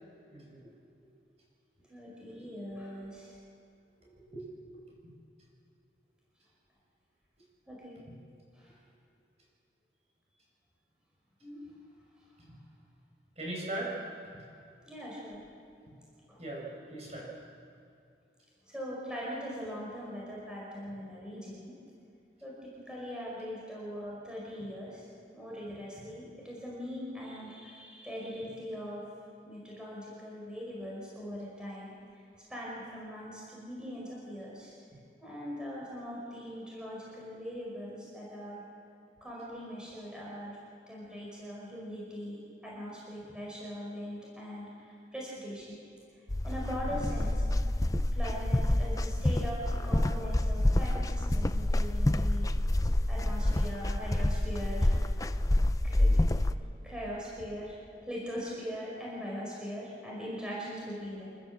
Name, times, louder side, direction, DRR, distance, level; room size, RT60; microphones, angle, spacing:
voice 1, 1.9-3.4 7.7-8.0 8.5-8.7 11.4-11.7 14.9-15.5 16.3-16.4 18.7-21.7 22.4-25.1 25.3-29.0 29.4-31.9 32.5-34.7 35.2-38.6 39.2-42.4 42.6-45.8 46.4-47.4 48.1-52.5 53.1-54.9 55.8-56.4 56.8-57.7 58.0-61.3, equal, 5° right, -5 dB, 5.1 m, -41 dB
voice 2, 13.4-13.9 16.4-17.3 46.9-47.0, right 1 dB, 35° right, -3 dB, 6.4 m, -39 dB
sound 1, 46.3-56.5, left 1 dB, 20° left, 0.5 m, -28 dB
27.5 x 13.5 x 7.5 m, 2.6 s
head